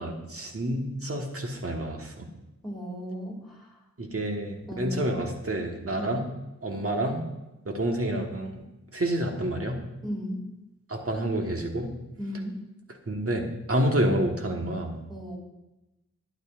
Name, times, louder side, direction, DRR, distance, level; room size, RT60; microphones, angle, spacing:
voice 1, 0.0-2.3 4.0-6.2 6.6-7.2 7.6-8.6 8.9-9.8 10.9-11.9 13.1-15.0, right 1 dB, 50° right, 2 dB, 1.5 m, -28 dB
voice 2, 2.6-3.8 4.7-5.1 6.0-6.1 10.0-10.5 12.2-12.6 15.1-15.4, equal, ahead, -4 dB, 2.5 m, -35 dB
11.5 x 9.3 x 2.5 m, 0.98 s
wide cardioid pair, 55°, 29 cm